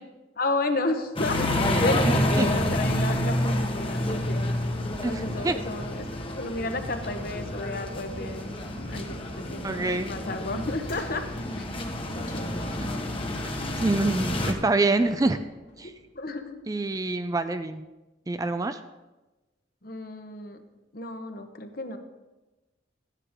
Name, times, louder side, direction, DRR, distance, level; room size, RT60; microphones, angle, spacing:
voice 1, 0.4-4.4 5.1-11.2 11.6-11.7 12.1-12.5 16.1-16.6 19.8-20.6 20.9-22.0, left 2 dB, 50° left, 6 dB, 1.0 m, -32 dB
sound 1, 1.2-14.5, left 1 dB, 30° left, 1.1 m, -29 dB
voice 2, 2.0-2.5 5.0-5.6 9.6-10.2 13.8-15.4 15.8-15.9 16.7-17.8 18.3-18.8, right 2 dB, 20° right, 10 dB, 0.3 m, -26 dB
sound 2, 10.8-13.1 14.2-14.6 14.9-16.7, left 2 dB, 70° left, 2.6 m, -49 dB
13.0 x 10.0 x 3.6 m, 1.1 s
head